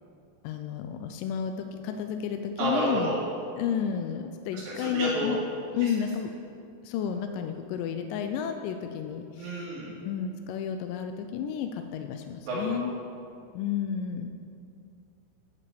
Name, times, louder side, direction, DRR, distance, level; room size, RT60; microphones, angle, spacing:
voice 1, 0.4-3.1 3.6-5.4 5.7-6.3 6.8-9.7 10.0-12.9 13.5-14.4, left 8 dB, 80° left, 6 dB, 2.0 m, -31 dB
voice 2, 2.6-3.2 4.5-5.3 5.8-5.9 9.4-9.9 12.5-12.9, right 1 dB, 75° right, -9 dB, 3.6 m, -30 dB
9.8 x 5.8 x 7.9 m, 2.5 s
omnidirectional pair, 4.1 m